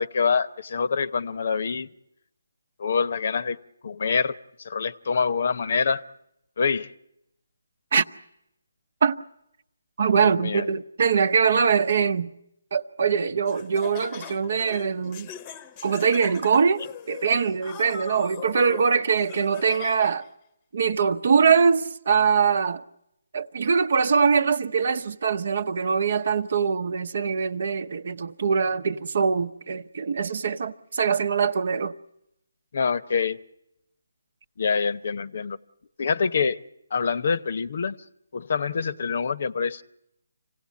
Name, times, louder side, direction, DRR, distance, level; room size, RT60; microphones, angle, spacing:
voice 1, 0.0-1.9 2.8-3.6 3.8-4.4 4.6-6.0 6.6-6.9 10.2-10.6 32.7-33.4 34.6-35.6 36.0-36.6 36.9-38.0 38.3-39.8, left 5 dB, 50° left, 0.8 m, -25 dB
voice 2, 10.0-12.3 12.7-15.3 15.8-20.2 20.7-22.8 23.3-32.0, right 6 dB, 55° right, 0.9 m, -23 dB
Laughter, 13.5-20.3, left 8 dB, 20° left, 0.9 m, -41 dB
26.5 x 17.0 x 8.4 m
hypercardioid pair, 160°, 0 cm